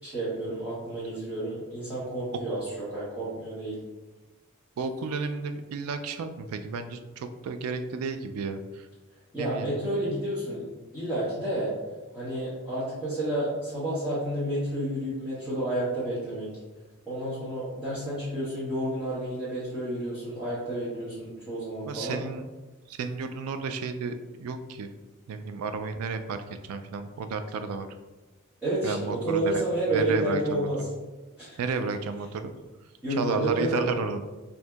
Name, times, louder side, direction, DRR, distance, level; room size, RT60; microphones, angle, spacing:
voice 1, 0.0-3.8 9.3-10.6 10.9-11.7 12.1-16.6 17.1-22.2 28.6-30.8 31.4-31.6 33.0-33.9, right 1 dB, 5° right, -13 dB, 1.1 m, -30 dB
voice 2, 4.8-8.9 9.4-9.8 21.8-22.4 22.9-24.9 25.3-27.9 28.8-29.6 29.9-30.7 31.6-32.5 33.2-34.2, right 4 dB, 80° right, 9 dB, 0.3 m, -32 dB
4.3 x 2.7 x 2.3 m, 1.2 s
head